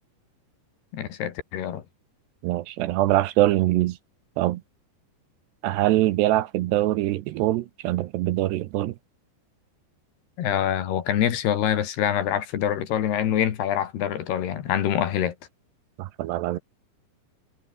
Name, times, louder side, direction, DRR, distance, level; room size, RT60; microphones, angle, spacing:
voice 1, 0.9-1.8 10.4-15.3, left 10 dB, 65° left, 4.0 m, -25 dB
voice 2, 2.4-4.0 4.4-4.6 5.6-9.0 16.0-16.6, right 15 dB, 75° right, 2.9 m, -23 dB
omnidirectional pair, 5.2 m